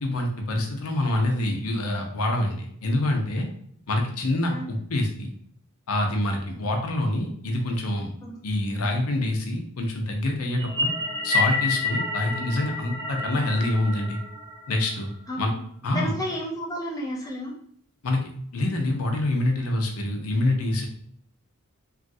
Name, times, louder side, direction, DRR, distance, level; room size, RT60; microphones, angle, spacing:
voice 1, 0.0-3.5 3.9-5.3 5.9-8.1 8.4-10.9 11.2-14.2 14.7-15.1 15.4-15.5 15.8-16.1 18.0-18.2 18.5-20.9, left 1 dB, 80° left, 3 dB, 0.6 m, -26 dB
sound 1, 10.6-15.1, left 3 dB, 25° right, 1.2 m, -29 dB
voice 2, 15.3-15.6 15.9-17.5, equal, 15° left, -2 dB, 0.4 m, -32 dB
3.0 x 2.4 x 2.6 m, 0.65 s
head